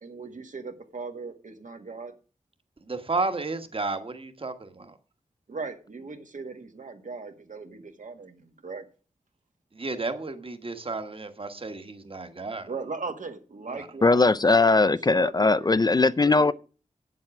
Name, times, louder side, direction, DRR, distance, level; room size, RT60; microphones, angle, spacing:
voice 1, 0.0-2.1 5.5-8.9 12.7-14.3 14.6-15.7 16.3-16.5, right 4 dB, 80° right, 1.7 m, -38 dB
voice 2, 2.9-4.9 9.8-12.7 13.7-13.8, right 3 dB, 45° right, 1.3 m, -32 dB
voice 3, 14.0-16.5, left 3 dB, 30° left, 0.4 m, -20 dB
8.7 x 7.5 x 5.9 m
wide cardioid pair, 95°, 13 cm